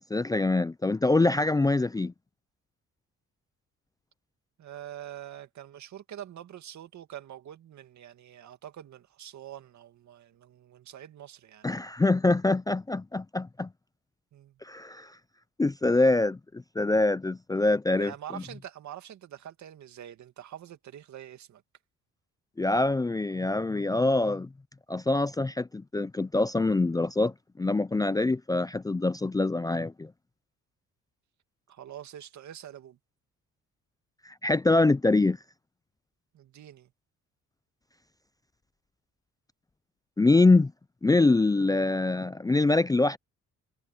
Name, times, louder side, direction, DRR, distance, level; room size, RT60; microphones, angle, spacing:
voice 1, 0.1-2.1 11.6-13.7 14.6-15.1 15.6-18.4 22.6-24.5 24.9-30.1 34.3-35.4 40.2-40.7 41.0-43.2, left 2 dB, 10° left, 0.5 m, -24 dB
voice 2, 4.6-11.7 14.3-14.6 17.9-21.6 23.9-24.1 28.2-28.4 31.7-33.0 36.3-36.9, right 11 dB, 70° right, 2.4 m, -45 dB
cardioid pair, 90°, 30 cm